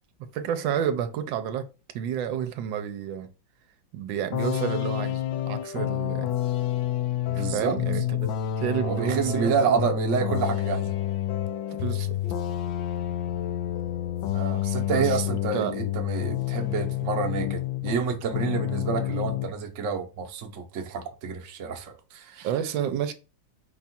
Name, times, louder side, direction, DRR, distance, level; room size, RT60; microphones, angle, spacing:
voice 1, 0.2-1.6 1.9-3.3 3.9-6.3 7.3-8.3 8.6-9.9 11.7-12.2 14.9-15.1 15.5-15.8 22.4-23.1, right 9 dB, 80° right, 1.3 m, -29 dB
sound 1, 4.3-18.1 18.3-19.5, left 11 dB, 80° left, 1.3 m, -29 dB
voice 2, 7.3-7.8 8.8-10.9 14.3-22.5, right 5 dB, 55° right, 1.0 m, -29 dB
5.3 x 2.4 x 4.1 m
omnidirectional pair, 2.1 m